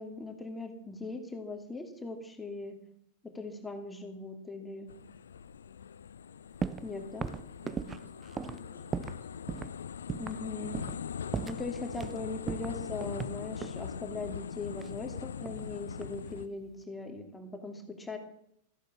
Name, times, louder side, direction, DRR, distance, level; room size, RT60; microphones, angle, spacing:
voice 1, 0.0-2.8 3.2-4.9 6.8-7.3 10.2-10.8 11.4-18.2, left 3 dB, 10° left, 5 dB, 2.7 m, -40 dB
sound 1, 4.9-16.5, left 7 dB, 65° left, 0.6 m, -41 dB
sound 2, 6.6-6.9 7.2-9.2 9.5-9.7 10.1-10.4 10.7-11.0 11.3-12.2 12.5-13.8 14.8-15.7 16.0-16.4, right 6 dB, 20° right, 0.6 m, -38 dB
voice 2, 7.5-9.4, equal, 85° right, 2 dB, 4.1 m, -56 dB
14.5 x 12.0 x 7.3 m, 0.72 s
figure-of-eight pair, 90°, 0 cm